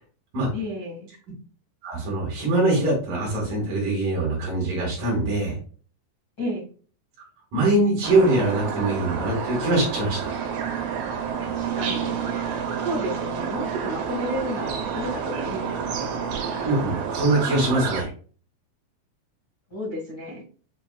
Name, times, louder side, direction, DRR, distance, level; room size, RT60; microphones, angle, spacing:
voice 1, 0.5-1.1 6.4-6.6 11.4-12.2 12.8-16.2 19.7-20.4, equal, 60° left, -6 dB, 1.0 m, -32 dB
voice 2, 1.8-5.6 7.5-10.3 16.6-18.1, right 2 dB, 60° right, -1 dB, 2.8 m, -23 dB
sound 1, 8.0-18.0, right 7 dB, 80° right, 2.8 m, -29 dB
7.3 x 2.6 x 2.4 m, 0.41 s
omnidirectional pair, 5.2 m